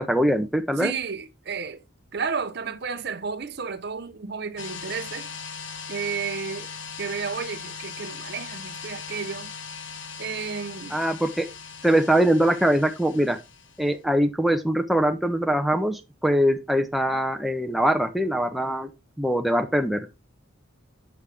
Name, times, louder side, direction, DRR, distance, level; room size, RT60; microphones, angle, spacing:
voice 1, 0.0-0.9 10.9-11.5 11.8-13.4 13.8-18.9 19.2-20.1, right 1 dB, ahead, 0.6 m, -22 dB
voice 2, 0.8-1.8 2.1-5.3 5.9-6.7 7.0-9.5 10.2-11.0, right 6 dB, 50° right, 0.7 m, -32 dB
sound 1, 4.6-13.9, left 6 dB, 70° left, 1.2 m, -39 dB
6.9 x 6.3 x 3.5 m
head